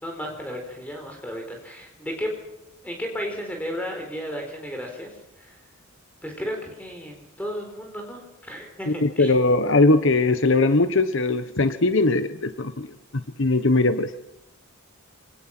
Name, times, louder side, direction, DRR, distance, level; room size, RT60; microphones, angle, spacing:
voice 1, 0.0-2.3 2.8-5.6 6.2-9.3, equal, 5° left, 2 dB, 4.5 m, -34 dB
voice 2, 8.9-12.9 13.1-14.1, left 2 dB, 55° left, 10 dB, 1.1 m, -20 dB
27.0 x 19.0 x 6.1 m, 0.89 s
head